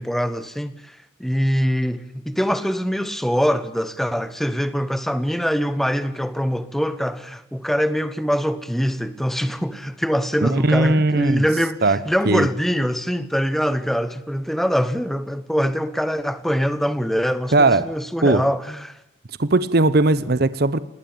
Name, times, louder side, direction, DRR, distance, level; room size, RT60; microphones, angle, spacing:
voice 1, 0.0-19.0, equal, ahead, 1.1 m, -23 dB
voice 2, 10.4-11.4 11.8-12.0 12.3-12.5 17.5-17.9 18.2-18.4 19.4-20.8, right 2 dB, 50° right, 0.8 m, -18 dB
19.5 x 18.5 x 8.7 m
head